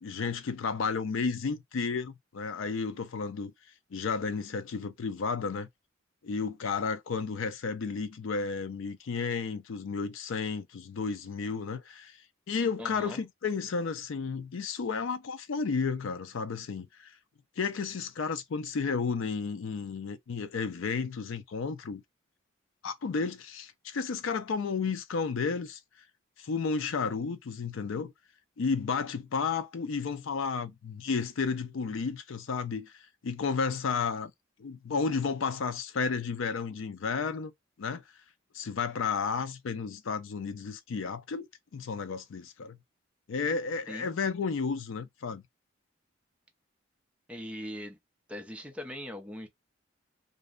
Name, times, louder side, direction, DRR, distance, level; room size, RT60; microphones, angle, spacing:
voice 1, 0.0-3.5 3.9-5.7 6.2-12.2 12.5-17.1 17.6-22.0 22.8-25.8 26.4-28.1 28.6-32.9 33.2-34.3 34.6-37.5 37.8-38.0 38.5-41.5 41.7-42.8 43.3-45.4, left 5 dB, 70° left, 0.4 m, -32 dB
voice 2, 12.8-13.2 43.9-44.1 47.3-48.0 48.3-49.5, equal, 5° right, 0.5 m, -40 dB
2.6 x 2.1 x 2.3 m
head